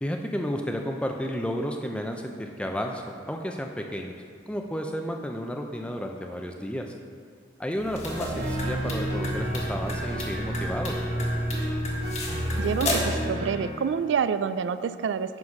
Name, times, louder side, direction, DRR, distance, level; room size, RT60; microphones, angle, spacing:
voice 1, 0.0-3.0 3.3-4.2 4.5-6.9 7.6-11.0, equal, 5° left, 3 dB, 0.5 m, -32 dB
sound 1, 7.8-13.2, left 1 dB, 35° left, 1.3 m, -33 dB
sound 2, 8.1-13.6, equal, 55° right, 1.3 m, -30 dB
voice 2, 12.6-15.4, right 6 dB, 80° right, 13 dB, 0.3 m, -27 dB
9.6 x 4.1 x 5.9 m, 2.2 s
head